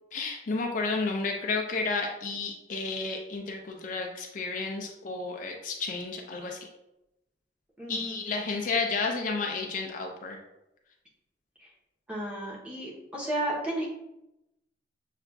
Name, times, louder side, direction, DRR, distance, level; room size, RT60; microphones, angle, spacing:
voice 1, 0.1-6.7 7.9-10.4, left 4 dB, 45° left, 2 dB, 0.4 m, -31 dB
voice 2, 7.8-8.2 12.1-13.9, right 1 dB, 5° right, -4 dB, 0.8 m, -33 dB
6.5 x 2.4 x 2.3 m, 0.91 s
head